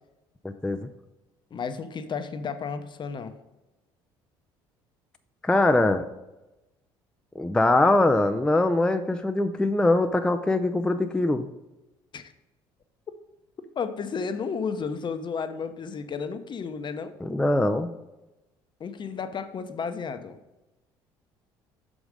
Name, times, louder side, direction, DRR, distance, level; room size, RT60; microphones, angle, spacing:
voice 1, 0.4-0.9 5.4-6.0 7.4-11.5 17.2-17.9, left 2 dB, 5° left, 7 dB, 0.4 m, -22 dB
voice 2, 1.5-3.4 12.1-12.3 13.8-17.1 18.8-20.4, left 5 dB, 40° left, 9 dB, 0.7 m, -32 dB
6.1 x 4.9 x 5.1 m, 1.0 s
hypercardioid pair, 65°, 12 cm